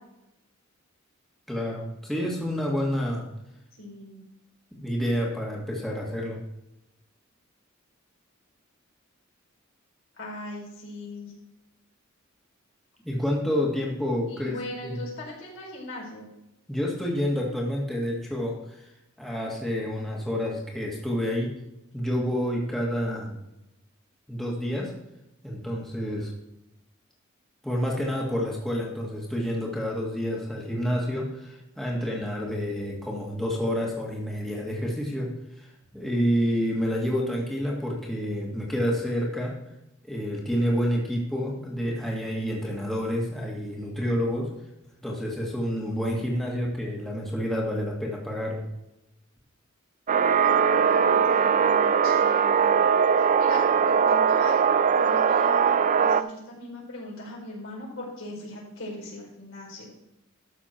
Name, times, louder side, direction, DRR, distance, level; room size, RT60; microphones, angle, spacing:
voice 1, 1.5-3.2 4.7-6.4 13.0-14.5 14.8-15.0 16.7-18.8 19.2-21.5 21.9-23.3 24.3-24.9 25.4-26.3 27.6-35.7 35.9-39.5 40.0-44.5 45.0-48.7, equal, ahead, -3 dB, 1.9 m, -28 dB
voice 2, 3.7-4.2 10.2-11.3 14.3-16.3 50.4-52.8 53.2-59.9, left 1 dB, 75° left, -3 dB, 4.7 m, -39 dB
sound 1, 50.1-56.2, right 7 dB, 40° right, 0.4 m, -21 dB
13.0 x 6.6 x 4.5 m, 0.89 s
head